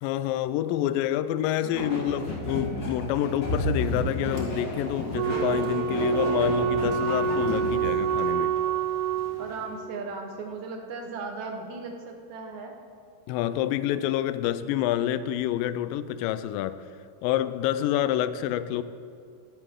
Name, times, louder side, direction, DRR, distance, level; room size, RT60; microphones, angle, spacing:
voice 1, 0.0-8.5 13.3-16.9 17.2-18.8, left 12 dB, 80° left, 2.2 m, -28 dB
voice 2, 1.6-2.0 9.4-12.7, right 4 dB, 65° right, 2.1 m, -37 dB
sound 1, 1.7-8.3, equal, 45° left, 1.3 m, -32 dB
Walk footsteps, 3.2-9.8, right 1 dB, 20° right, 3.2 m, -46 dB
Wind instrument woodwind instrument, 5.1-9.5, right 7 dB, 80° right, 1.8 m, -26 dB
23.0 x 8.3 x 3.7 m
omnidirectional pair, 4.2 m